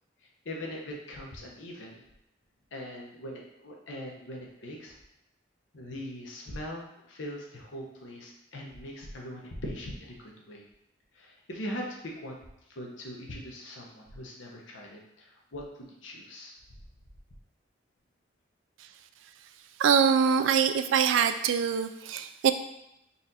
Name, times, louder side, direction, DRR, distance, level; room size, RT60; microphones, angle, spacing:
voice 1, 0.4-2.0 2.7-5.0 5.7-10.6 11.1-12.4 12.7-16.6, equal, 90° left, -1 dB, 0.9 m, -41 dB
voice 2, 19.8-22.5, right 7 dB, 90° right, 10 dB, 0.3 m, -24 dB
4.1 x 2.5 x 4.1 m, 0.84 s
head